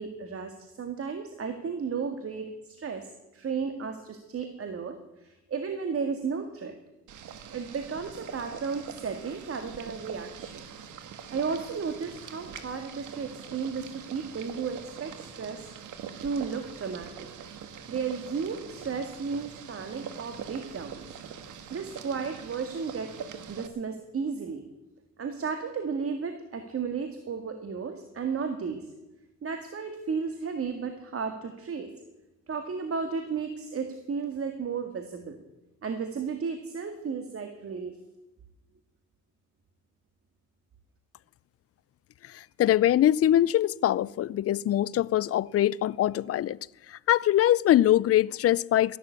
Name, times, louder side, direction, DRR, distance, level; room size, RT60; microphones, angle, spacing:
voice 1, 0.0-6.7 7.5-10.7 11.3-15.7 16.2-17.3 17.9-21.2 21.7-23.1 23.5-24.6 25.2-28.8 29.4-31.9 32.5-35.4 35.8-37.9, right 5 dB, 50° right, 2.0 m, -34 dB
Boiling, 7.1-23.7, right 7 dB, 75° right, 1.7 m, -43 dB
voice 2, 42.2-46.6 46.9-49.0, left 12 dB, 50° left, 0.5 m, -23 dB
15.0 x 11.5 x 8.3 m
cardioid pair, 90°, 30 cm